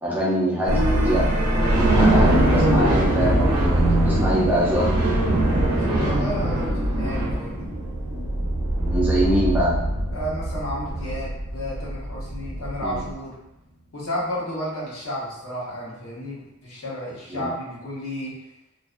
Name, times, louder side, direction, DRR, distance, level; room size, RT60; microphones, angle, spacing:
voice 1, 0.0-1.3 1.7-5.1 8.8-9.8 12.8-13.0 17.3-17.5, equal, 10° right, -7 dB, 0.4 m, -24 dB
sound 1, 0.7-13.1, right 1 dB, 80° right, 0.5 m, -22 dB
voice 2, 5.5-7.7 10.1-13.4 13.9-18.3, equal, 65° left, -7 dB, 0.9 m, -32 dB
2.5 x 2.2 x 2.4 m, 0.90 s
head